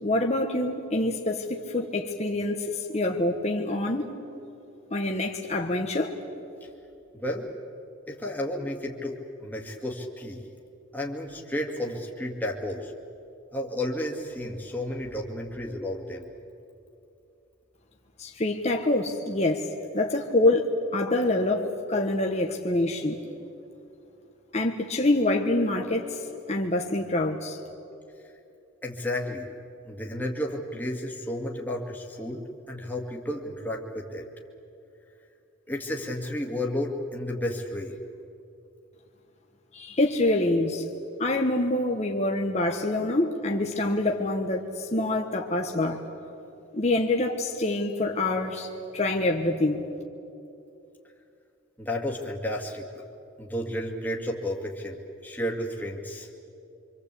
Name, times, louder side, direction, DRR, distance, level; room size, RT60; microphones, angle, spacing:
voice 1, 0.0-4.1 4.9-6.1 18.2-23.2 24.5-26.2 26.5-27.6 39.7-40.8 41.2-46.0 46.7-48.7 48.9-49.9, left 2 dB, 35° left, 2 dB, 1.3 m, -26 dB
voice 2, 8.1-10.4 10.9-12.9 13.5-16.2 28.8-29.5 29.8-32.4 32.7-34.3 35.7-38.0 51.8-52.9 53.4-55.0 55.2-56.3, left 1 dB, 10° left, -1 dB, 2.2 m, -32 dB
25.5 x 25.5 x 8.4 m, 2.7 s
head